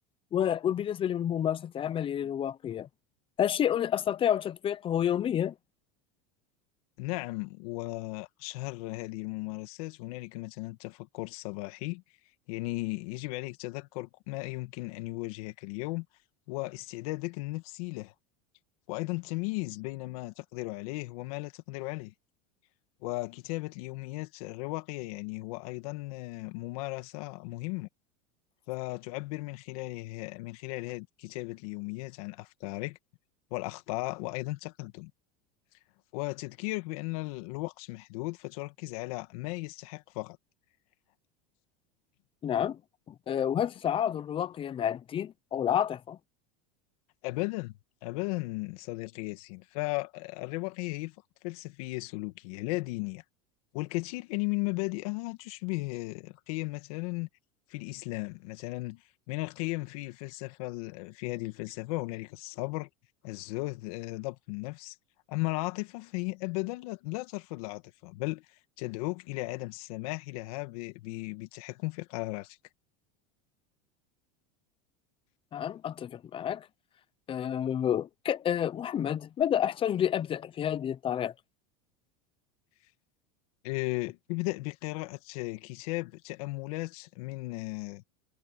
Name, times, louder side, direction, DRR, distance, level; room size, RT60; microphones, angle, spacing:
voice 1, 0.3-2.9 3.4-5.5 42.4-42.8 43.1-46.2 75.5-76.7 77.3-81.3, left 9 dB, 30° left, 0.8 m, -29 dB
voice 2, 7.0-12.0 12.5-16.1 16.5-18.1 18.9-22.1 23.0-27.9 28.7-33.0 33.5-35.1 36.1-40.4 47.2-47.7 48.0-51.1 51.4-53.2 53.7-57.3 57.7-62.9 63.2-65.0 65.3-72.6 83.6-88.0, left 23 dB, 70° left, 2.2 m, -36 dB
supercardioid pair, 130°, 19 cm